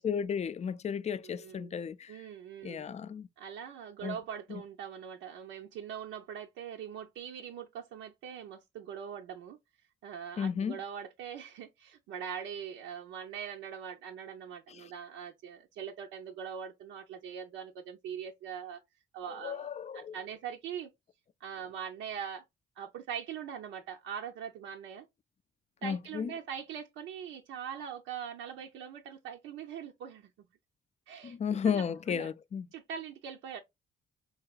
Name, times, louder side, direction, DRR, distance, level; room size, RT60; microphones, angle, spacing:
voice 1, 0.0-2.2 2.6-3.3 4.0-4.1 4.5-4.6 10.4-10.8 19.4-20.1 25.8-26.3 31.2-32.7, left 7 dB, 35° left, 0.4 m, -33 dB
voice 2, 1.2-1.7 2.1-2.9 3.4-9.6 10.0-18.8 19.1-19.7 19.9-20.9 21.4-22.4 22.8-25.1 25.8-30.5 31.1-32.3 32.7-33.6, right 8 dB, 90° right, 0.6 m, -42 dB
4.7 x 2.8 x 2.3 m
cardioid pair, 90°, 20 cm